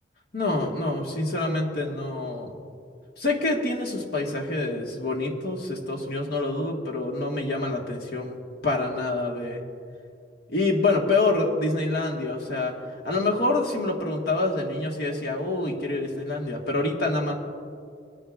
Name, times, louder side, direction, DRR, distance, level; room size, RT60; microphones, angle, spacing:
voice 1, 0.3-2.5 3.2-8.4 8.6-9.6 10.5-12.7 13.0-17.3, left 2 dB, 60° left, 0 dB, 1.6 m, -26 dB
23.0 x 10.5 x 2.5 m, 2.4 s
head